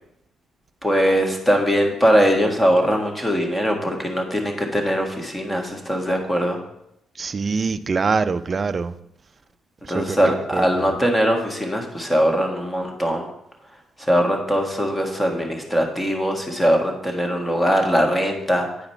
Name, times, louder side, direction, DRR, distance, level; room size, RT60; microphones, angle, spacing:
voice 1, 0.8-6.6 9.9-13.3 14.0-18.9, equal, 10° left, 1.6 m, -21 dB
voice 2, 7.2-8.9 9.9-10.8, right 4 dB, 35° right, 0.4 m, -24 dB
9.5 x 4.9 x 4.4 m
cardioid pair, 90°, 0 cm